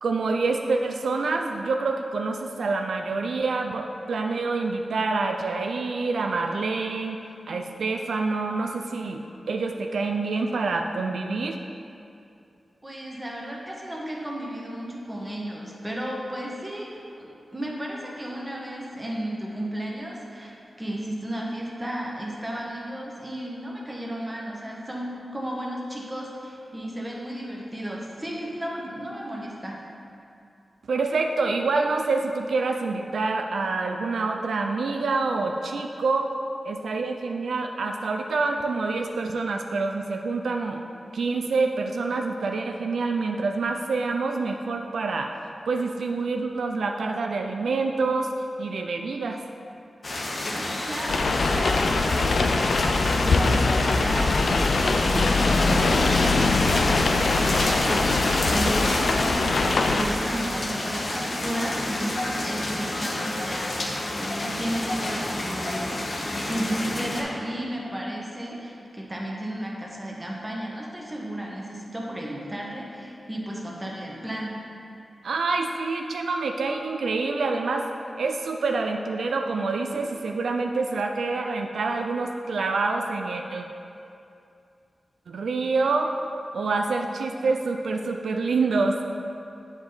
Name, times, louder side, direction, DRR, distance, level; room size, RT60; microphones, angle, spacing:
voice 1, 0.0-7.2 7.5-11.6 30.9-36.3 36.6-40.8 41.1-45.3 45.7-48.3 48.6-49.4 75.2-77.9 78.2-83.7 85.3-86.2 86.5-89.0, right 3 dB, 90° right, 3 dB, 0.4 m, -27 dB
voice 2, 12.8-29.8 50.5-74.6, right 1 dB, 20° right, -3 dB, 1.2 m, -34 dB
sound 1, 50.0-67.2, left 1 dB, 50° left, 0.9 m, -28 dB
sound 2, 51.1-60.0, left 3 dB, 80° left, 0.4 m, -23 dB
8.3 x 4.9 x 3.9 m, 2.6 s
wide cardioid pair, 90°, 0 cm